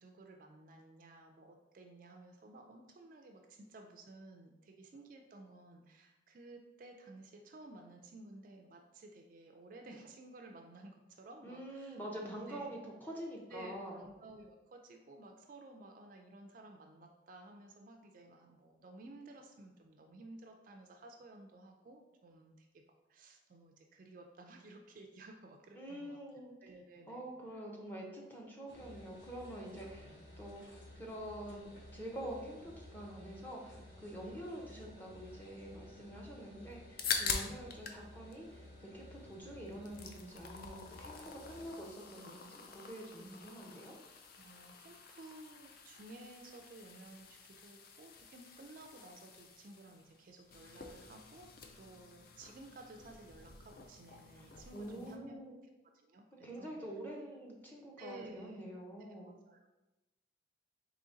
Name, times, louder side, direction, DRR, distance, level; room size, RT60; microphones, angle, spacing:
voice 1, 0.0-12.7 13.5-22.8 23.1-26.2 26.6-27.3 34.2-34.4 37.2-37.6 41.6-41.7 43.2-43.4 44.4-51.5 51.7-55.4 55.9-56.8 58.0-58.7 59.0-59.8, right 2 dB, 45° right, 3 dB, 0.3 m, -55 dB
voice 2, 11.4-14.0 25.7-26.5 27.1-43.9 54.4-55.5 56.4-59.3, right 1 dB, 10° left, -2 dB, 0.6 m, -46 dB
sound 1, 28.7-41.7, left 1 dB, 70° left, 1.1 m, -55 dB
sound 2, 36.7-38.0 38.3-39.3 39.7-55.2, left 5 dB, 50° left, 0.4 m, -45 dB
3.9 x 3.0 x 3.7 m, 1.1 s
head